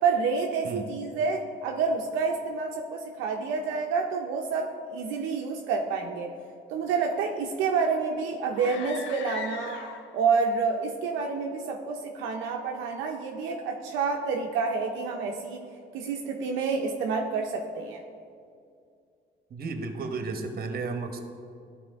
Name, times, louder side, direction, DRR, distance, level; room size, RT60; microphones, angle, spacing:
voice 1, 0.0-6.3 6.7-9.8 10.1-15.6 15.9-18.0, right 5 dB, 80° right, 2 dB, 0.6 m, -28 dB
sound 1, 8.5-10.3, left 7 dB, 70° left, 0.6 m, -40 dB
voice 2, 19.5-21.2, right 4 dB, 50° right, 6 dB, 1.0 m, -33 dB
11.5 x 4.2 x 3.4 m, 2.4 s
supercardioid pair, 70°, 20 cm